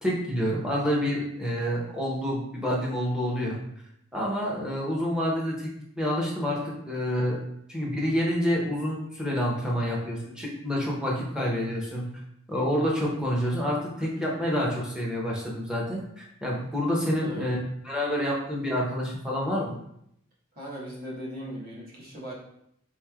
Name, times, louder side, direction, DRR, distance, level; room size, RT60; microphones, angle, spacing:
voice 1, 0.0-3.6 4.1-5.7 6.0-7.4 7.7-12.1 12.5-17.6 17.8-19.8, equal, 5° right, -4 dB, 0.6 m, -28 dB
voice 2, 17.2-17.5 20.5-22.4, equal, 45° right, -6 dB, 1.0 m, -38 dB
3.8 x 3.1 x 2.3 m, 0.76 s
head